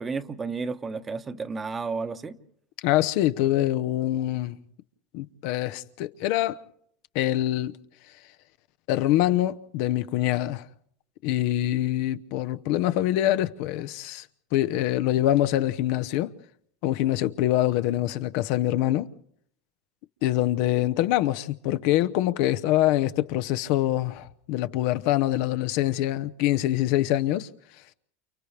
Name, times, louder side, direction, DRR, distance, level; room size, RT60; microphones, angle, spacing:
voice 1, 0.0-2.4, right 4 dB, 20° right, 1.1 m, -32 dB
voice 2, 2.8-4.6 5.1-6.6 7.1-7.7 8.9-10.7 11.2-14.2 14.5-16.3 16.8-19.1 20.2-27.5, left 14 dB, 65° left, 0.9 m, -24 dB
29.5 x 29.0 x 3.4 m
supercardioid pair, 110°, 0 cm